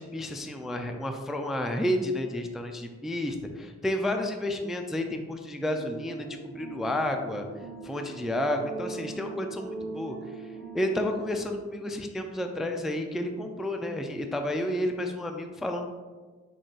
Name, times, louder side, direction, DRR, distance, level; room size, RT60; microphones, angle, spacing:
voice 1, 0.0-7.5 7.8-10.2 10.7-15.9, left 1 dB, ahead, 4 dB, 0.3 m, -31 dB
sound 1, 5.7-11.4, right 3 dB, 45° right, 0.7 m, -41 dB
3.7 x 3.7 x 2.4 m, 1.4 s
cardioid pair, 50°, 30 cm